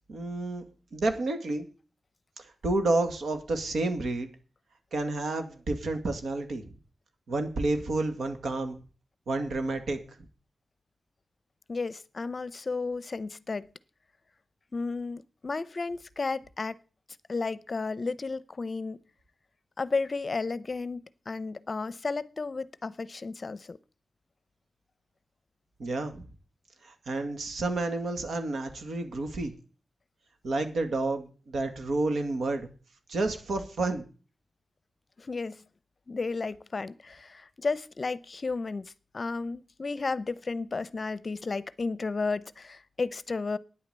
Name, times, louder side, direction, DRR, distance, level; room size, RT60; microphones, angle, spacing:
voice 1, 0.1-0.6 0.9-1.7 2.4-4.3 4.9-6.6 7.3-8.8 9.3-10.0 25.8-26.2 26.8-29.5 30.4-32.7 33.1-34.1, right 2 dB, 85° right, 2.1 m, -30 dB
voice 2, 11.7-13.6 14.7-16.7 17.3-19.0 19.8-23.8 35.2-35.6 36.1-43.6, left 4 dB, 40° left, 0.6 m, -33 dB
9.7 x 8.8 x 8.1 m
wide cardioid pair, 115°, 0 cm